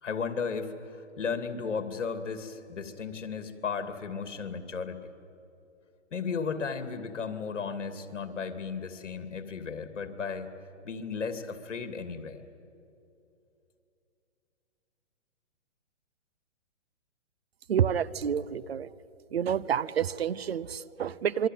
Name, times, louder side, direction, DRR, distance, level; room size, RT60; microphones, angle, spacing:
voice 1, 0.0-5.0 6.1-10.5 10.8-12.4, left 5 dB, 75° left, 9 dB, 2.7 m, -35 dB
voice 2, 17.7-18.9 19.3-21.5, right 8 dB, 55° right, 19 dB, 0.8 m, -29 dB
27.0 x 23.0 x 9.3 m, 2.7 s
hypercardioid pair, 165°, 36 cm